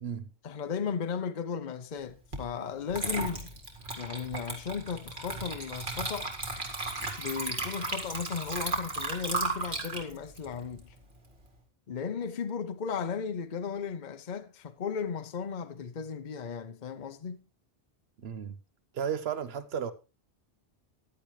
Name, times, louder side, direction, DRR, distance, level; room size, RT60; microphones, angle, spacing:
voice 1, 0.4-3.5 4.0-6.3 7.2-10.9 11.9-17.4, left 6 dB, 50° left, 0.8 m, -35 dB
Water / Liquid, 2.3-2.5 2.9-11.4, right 2 dB, 50° right, 2.2 m, -35 dB
voice 2, 18.2-18.6 18.9-19.9, right 8 dB, 70° right, 1.1 m, -34 dB
14.5 x 10.5 x 3.2 m
omnidirectional pair, 1.1 m